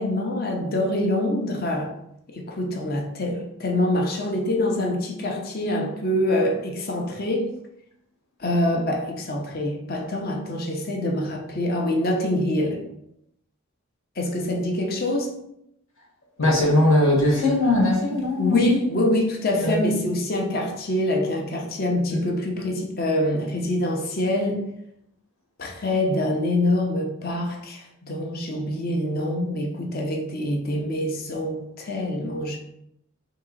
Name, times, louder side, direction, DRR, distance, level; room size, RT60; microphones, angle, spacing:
voice 1, 0.0-1.9 2.3-7.5 8.4-12.8 14.2-15.3 18.4-24.6 25.6-32.6, left 1 dB, 45° left, 0.7 m, -25 dB
voice 2, 16.4-18.7 19.6-19.8 22.1-22.2, left 1 dB, 75° left, 1.5 m, -20 dB
3.8 x 2.9 x 3.9 m
head